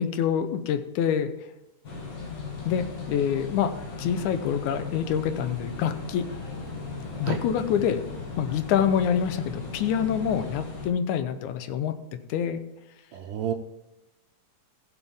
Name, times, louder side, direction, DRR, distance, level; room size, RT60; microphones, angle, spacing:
voice 1, 0.0-1.3 2.7-3.7 4.0-6.3 7.2-8.0 8.4-12.0 12.3-12.6, left 8 dB, 80° left, 9 dB, 2.1 m, -26 dB
sound 1, 1.8-10.9, left 3 dB, 45° left, 1.7 m, -37 dB
voice 2, 13.1-13.5, right 10 dB, 90° right, 1 dB, 2.2 m, -30 dB
15.0 x 7.1 x 3.6 m, 0.97 s
omnidirectional pair, 3.6 m